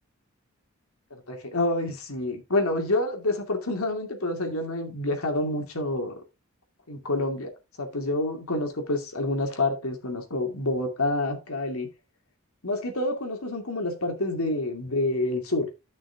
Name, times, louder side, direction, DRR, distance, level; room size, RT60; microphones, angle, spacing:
voice 1, 1.1-6.1 6.9-7.5 7.8-11.9 12.6-15.7, left 2 dB, 90° left, 2.5 m, -28 dB
11.5 x 6.1 x 3.5 m
head